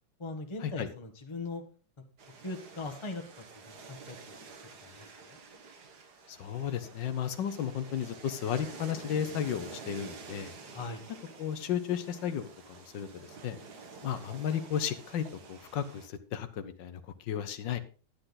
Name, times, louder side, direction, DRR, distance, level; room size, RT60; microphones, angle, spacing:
voice 1, 0.2-1.6 2.4-3.2 3.5-4.2 4.8-5.4 10.7-11.0, left 2 dB, 20° left, 5 dB, 1.1 m, -40 dB
sound 1, 2.2-16.1, right 4 dB, 65° right, 1.9 m, -49 dB
voice 2, 6.3-10.5 11.4-13.6 14.0-17.8, left 9 dB, 85° left, 10 dB, 1.6 m, -34 dB
10.0 x 10.0 x 4.0 m, 0.36 s
omnidirectional pair, 1.9 m